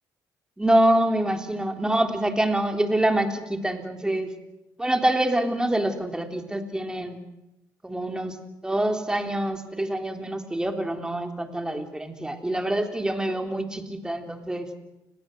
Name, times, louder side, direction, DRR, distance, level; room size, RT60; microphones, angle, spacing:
voice 1, 0.6-4.3 4.8-7.2 7.8-8.4 8.6-14.7, right 1 dB, 10° right, 5 dB, 3.6 m, -25 dB
29.5 x 19.5 x 8.0 m, 0.94 s
cardioid pair, 90°, 8 cm